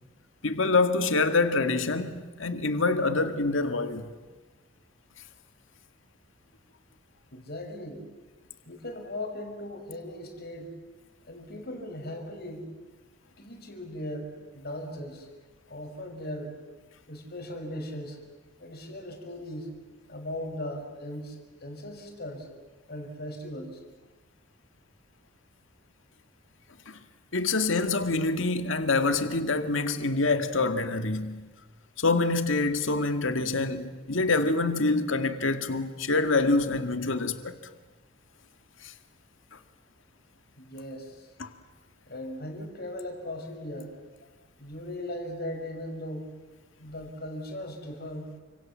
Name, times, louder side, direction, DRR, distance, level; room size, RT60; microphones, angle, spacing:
voice 1, 0.4-4.0 26.9-27.0 27.3-31.4 32.0-37.6 38.8-38.9 41.4-41.5, left 3 dB, 75° left, 2.0 m, -26 dB
voice 2, 7.3-8.0 8.6-10.7 11.3-12.7 13.4-15.3 15.7-16.5 17.1-18.2 18.6-19.7 20.1-22.5 22.9-23.8 40.6-41.3 42.1-43.9 44.6-46.3 46.8-48.4, left 1 dB, 50° left, 5.4 m, -38 dB
29.5 x 26.5 x 7.5 m
head